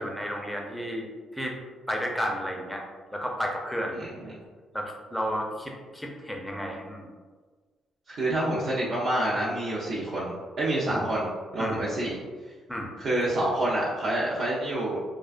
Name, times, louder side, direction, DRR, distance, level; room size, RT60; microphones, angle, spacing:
voice 1, 0.0-1.6 1.9-2.8 3.1-4.3 4.7-7.1 10.9-11.0 11.6-11.8 12.7-12.9, equal, 5° left, 0 dB, 0.4 m, -32 dB
voice 2, 3.9-4.4 8.1-12.2 13.0-15.0, right 1 dB, 65° right, -7 dB, 0.5 m, -28 dB
2.3 x 2.2 x 2.4 m, 1.4 s
cardioid pair, 90°, 0 cm